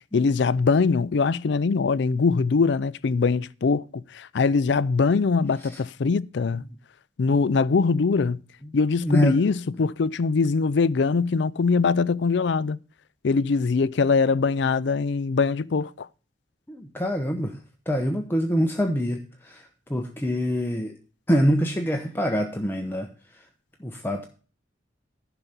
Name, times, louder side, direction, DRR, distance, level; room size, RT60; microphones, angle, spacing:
voice 1, 0.1-3.8 4.1-6.6 7.2-8.4 8.7-12.8 13.2-16.1, left 4 dB, 65° left, 0.4 m, -22 dB
voice 2, 9.0-9.4 16.7-17.6 17.9-19.6 19.9-21.0 21.3-23.1 23.8-24.3, equal, 10° left, 0.9 m, -25 dB
11.0 x 5.8 x 6.7 m
head